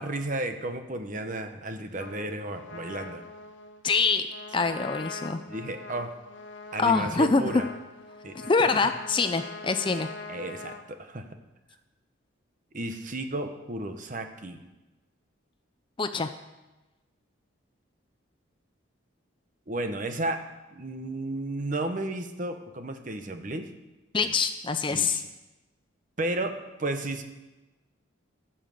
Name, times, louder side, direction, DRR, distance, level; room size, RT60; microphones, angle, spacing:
voice 1, 0.0-3.2 5.5-6.1 6.7-7.7 8.2-8.4 10.3-11.2 12.7-14.6 19.7-20.4 20.7-23.7 24.9-25.3 26.2-27.2, right 2 dB, 40° right, 7 dB, 0.9 m, -33 dB
Trumpet, 2.0-10.8, left 3 dB, 60° left, 0.8 m, -42 dB
voice 2, 3.8-4.3 4.5-5.4 6.8-7.4 8.3-10.1 16.0-16.3 24.1-25.2, left 4 dB, 25° left, 9 dB, 0.4 m, -25 dB
14.0 x 5.7 x 6.8 m, 1.1 s
head